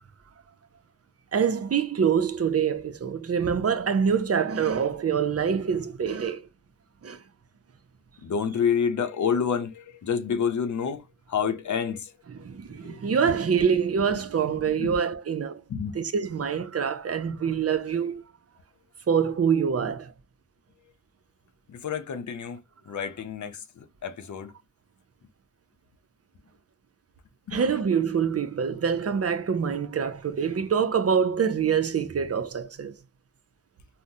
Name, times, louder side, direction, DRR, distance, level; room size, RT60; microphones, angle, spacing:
voice 1, 1.3-6.4 7.0-7.2 12.3-15.6 16.0-18.2 19.1-20.1 27.5-33.0, right 7 dB, 55° right, 0.6 m, -25 dB
voice 2, 8.2-11.0 11.3-12.1 12.8-13.0 14.8-15.0 15.7-16.0 21.7-24.5 27.5-27.6, left 7 dB, 80° left, 0.6 m, -28 dB
3.8 x 2.1 x 2.7 m
wide cardioid pair, 85°, 29 cm